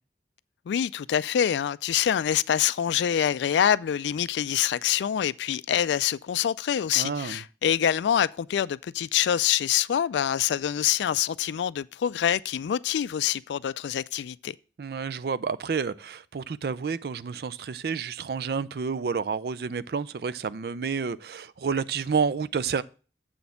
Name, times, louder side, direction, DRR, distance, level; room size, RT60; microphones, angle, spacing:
voice 1, 0.7-14.5, left 9 dB, 85° left, 0.3 m, -25 dB
voice 2, 6.9-7.4 14.8-22.8, right 5 dB, 60° right, 0.4 m, -30 dB
7.6 x 4.2 x 6.9 m
head